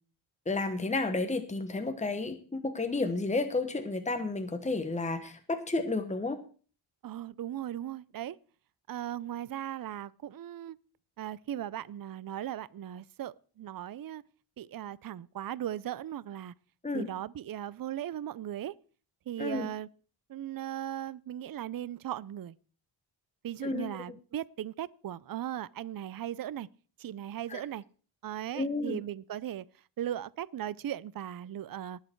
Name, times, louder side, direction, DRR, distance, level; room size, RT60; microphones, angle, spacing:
voice 1, 0.4-6.4 16.8-17.1 19.4-19.7 23.6-23.9 27.5-27.6 28.5-29.0, left 3 dB, 15° left, 1.2 m, -31 dB
voice 2, 7.0-8.4 8.9-10.8 11.2-14.2 14.6-16.5 16.9-18.8 19.3-19.9 20.3-22.5 23.4-26.7 27.0-27.8 28.2-29.7 30.0-32.0, right 11 dB, 45° right, 0.5 m, -38 dB
19.5 x 6.7 x 4.6 m
wide cardioid pair, 100°, 48 cm